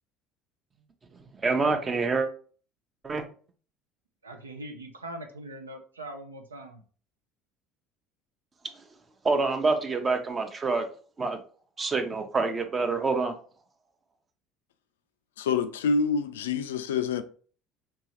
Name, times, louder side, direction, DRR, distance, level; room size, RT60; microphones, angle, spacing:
voice 1, 1.4-2.3 3.0-3.2 9.2-10.9 11.2-11.4 11.8-13.3, right 3 dB, 25° right, 0.7 m, -26 dB
voice 2, 4.2-6.8, right 1 dB, 80° right, 0.5 m, -41 dB
voice 3, 15.4-17.2, left 5 dB, 70° left, 0.3 m, -27 dB
4.6 x 3.0 x 2.9 m
figure-of-eight pair, 60°, 0 cm